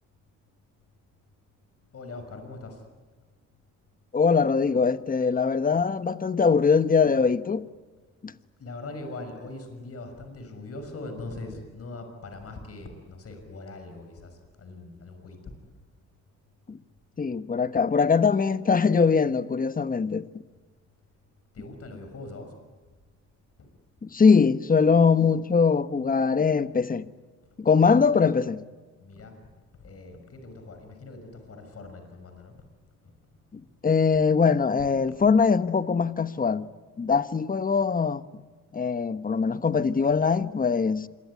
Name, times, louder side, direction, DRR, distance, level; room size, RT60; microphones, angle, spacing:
voice 1, 1.9-2.8 8.6-15.5 21.5-22.5 23.6-23.7 27.9-28.0 29.0-29.4 29.8-32.6 33.0-33.1, left 2 dB, 50° left, 6.1 m, -41 dB
voice 2, 4.1-7.6 8.2-8.3 16.7-16.8 17.2-20.3 24.0-27.1 27.6-28.6 33.5-36.7 37.0-38.2 38.7-41.1, left 5 dB, 30° left, 1.2 m, -22 dB
27.0 x 22.5 x 9.8 m
cardioid pair, 90°, 30 cm